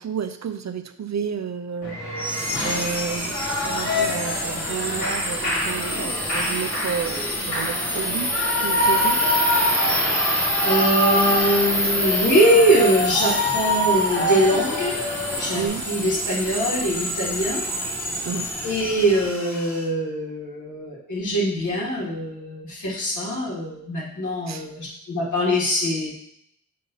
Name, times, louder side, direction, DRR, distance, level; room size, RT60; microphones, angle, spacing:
voice 1, 0.0-2.0 2.6-8.3 8.6-9.2 11.8-11.9 15.5-15.8 18.2-18.5 24.5-24.7, right 7 dB, 65° right, 10 dB, 0.6 m, -31 dB
Shout / Cheering, 1.8-15.7, left 1 dB, 70° left, 2.8 m, -26 dB
sound 1, 2.2-19.8, equal, 5° left, 1.2 m, -27 dB
sound 2, 2.5-19.3, right 2 dB, 10° right, 0.8 m, -40 dB
voice 2, 10.6-14.9 15.4-17.6 18.6-26.1, equal, 85° left, -6 dB, 2.4 m, -22 dB
7.5 x 2.8 x 5.6 m, 0.72 s
cardioid pair, 50°, 30 cm